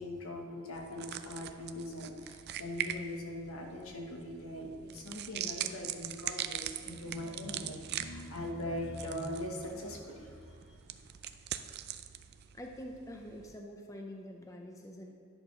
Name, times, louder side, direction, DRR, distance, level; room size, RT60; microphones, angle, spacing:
voice 1, 0.0-10.5, left 1 dB, 80° left, 1 dB, 1.3 m, -41 dB
sound 1, 0.7-13.6, right 11 dB, 50° right, 0.4 m, -42 dB
voice 2, 12.5-15.1, equal, 15° left, 2 dB, 0.5 m, -46 dB
10.5 x 4.5 x 6.0 m, 2.3 s
head